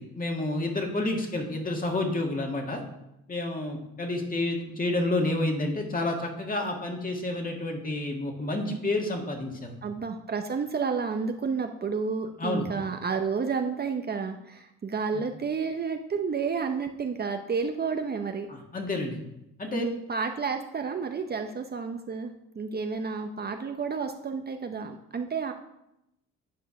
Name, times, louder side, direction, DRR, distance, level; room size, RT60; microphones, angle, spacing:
voice 1, 0.0-2.8 3.3-9.8 12.4-12.6 15.1-15.2 18.5-19.2 19.6-19.9, left 2 dB, 30° left, 2 dB, 1.9 m, -29 dB
voice 2, 9.8-18.5 19.7-25.5, right 5 dB, 35° right, 6 dB, 0.7 m, -31 dB
9.3 x 4.5 x 5.8 m, 0.86 s
cardioid pair, 90°, 30 cm